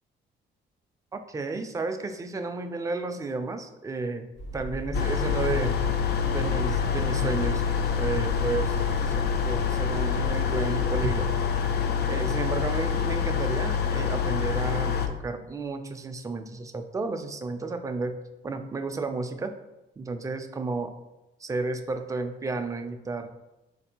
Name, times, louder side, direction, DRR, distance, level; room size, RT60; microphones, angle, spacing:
voice 1, 1.1-4.3 4.5-5.8 6.3-7.6 7.9-8.7 9.0-11.4 12.0-18.1 18.4-19.5 20.0-20.9 21.4-23.3, right 3 dB, 15° right, 7 dB, 0.3 m, -32 dB
sound 1, 4.4-11.3, equal, 80° left, 1.0 m, -35 dB
sound 2, 4.9-15.1, left 7 dB, 55° left, 0.4 m, -26 dB
4.0 x 2.6 x 2.8 m, 0.96 s
cardioid pair, 90°, 20 cm